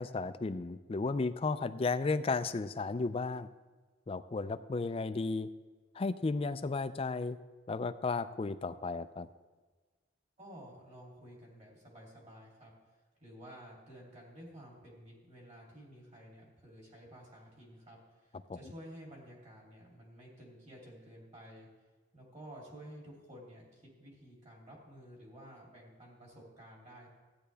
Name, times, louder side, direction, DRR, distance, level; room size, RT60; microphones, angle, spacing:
voice 1, 0.0-3.5 4.1-5.5 6.0-7.4 7.7-9.3 18.5-18.6, left 3 dB, 30° left, 12 dB, 0.3 m, -34 dB
voice 2, 10.4-12.7 13.2-21.7 22.1-27.1, equal, 35° right, -3 dB, 3.1 m, -52 dB
14.0 x 9.6 x 3.4 m, 1.3 s
head